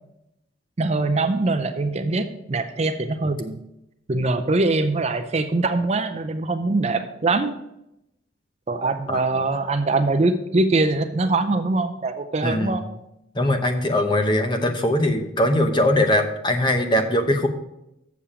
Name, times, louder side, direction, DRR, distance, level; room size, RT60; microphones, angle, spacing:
voice 1, 0.8-3.6 4.1-7.5 8.7-12.8, right 3 dB, 35° right, 8 dB, 0.5 m, -23 dB
voice 2, 9.1-9.4 12.4-12.8 13.3-17.5, left 1 dB, 25° left, 6 dB, 0.7 m, -21 dB
7.2 x 7.1 x 4.9 m, 0.85 s
head